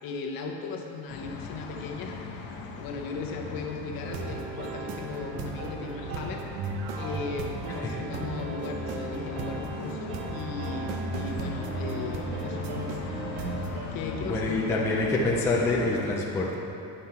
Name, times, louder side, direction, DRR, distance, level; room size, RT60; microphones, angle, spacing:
voice 1, 0.0-6.5 6.9-13.1 13.9-14.8, left 4 dB, 55° left, 2 dB, 0.9 m, -37 dB
sound 1, 1.1-16.0, left 3 dB, 90° left, 1.1 m, -38 dB
sound 2, 4.0-13.9, right 4 dB, 65° right, 0.8 m, -36 dB
voice 2, 14.3-16.6, left 2 dB, 5° left, -4 dB, 0.4 m, -26 dB
9.4 x 5.8 x 4.3 m, 2.9 s
cardioid pair, 180°, 43 cm